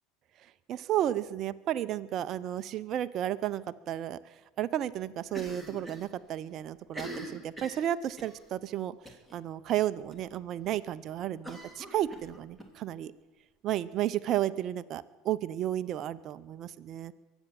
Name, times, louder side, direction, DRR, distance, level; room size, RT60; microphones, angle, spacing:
voice 1, 0.7-4.2 4.6-8.9 9.3-13.1 13.6-17.1, right 12 dB, 50° right, 12 dB, 0.6 m, -32 dB
Cough, 5.3-6.1 6.4-6.5 6.8-8.4 9.1-9.4 9.7-9.8 10.1-10.2 11.4-12.7, right 1 dB, 5° left, 2.7 m, -43 dB
23.0 x 8.1 x 7.6 m, 1.2 s
hypercardioid pair, 90°, 0 cm